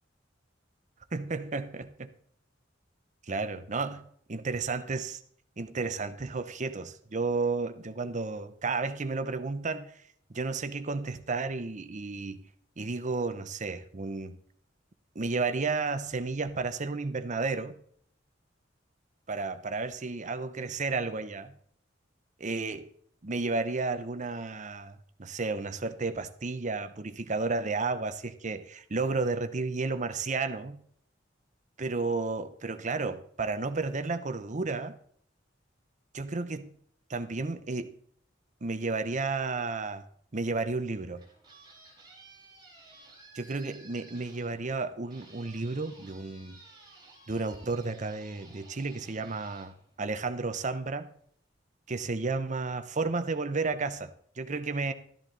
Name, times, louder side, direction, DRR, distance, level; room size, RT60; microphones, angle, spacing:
voice 1, 1.1-2.1 3.3-5.2 5.6-9.9 10.3-12.4 12.8-14.4 15.1-17.7 19.3-21.6 22.4-22.9 23.2-30.8 31.8-35.0 36.1-36.7 37.1-38.0 38.6-40.0 40.3-41.2 43.3-46.6 47.3-51.1 51.9-54.9, right 3 dB, 40° right, 0.8 m, -32 dB
sound 1, 41.0-50.6, right 3 dB, 25° right, 5.3 m, -55 dB
13.0 x 10.5 x 3.9 m
head